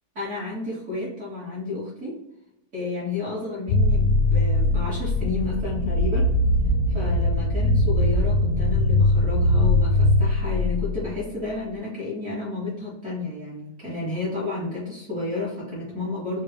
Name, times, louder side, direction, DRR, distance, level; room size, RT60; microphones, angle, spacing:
voice 1, 0.1-2.2 2.7-6.3 6.9-16.4, left 3 dB, 50° right, -8 dB, 1.5 m, -31 dB
sound 1, 3.7-11.2, left 1 dB, 75° left, 1.0 m, -21 dB
4.3 x 2.1 x 3.2 m, 0.89 s
omnidirectional pair, 1.6 m